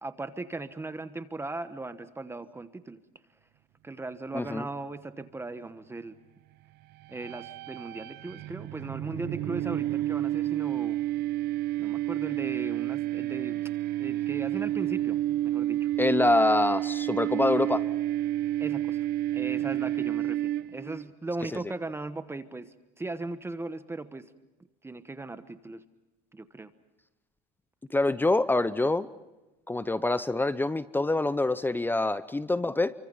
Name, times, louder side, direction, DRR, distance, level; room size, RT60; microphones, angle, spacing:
voice 1, 0.0-3.0 3.8-6.2 7.1-11.0 11.8-13.6 14.0-15.9 18.6-19.1 19.3-24.3 24.8-25.8 26.3-26.7, right 2 dB, 15° right, 11 dB, 1.2 m, -38 dB
voice 2, 4.3-4.7 16.0-17.8 21.5-21.6 27.9-29.1 29.7-32.9, left 2 dB, 10° left, 15 dB, 0.7 m, -25 dB
sound 1, 7.0-21.0, right 14 dB, 65° right, 0.8 m, -30 dB
28.5 x 24.5 x 5.6 m, 1.0 s
supercardioid pair, 110°, 18 cm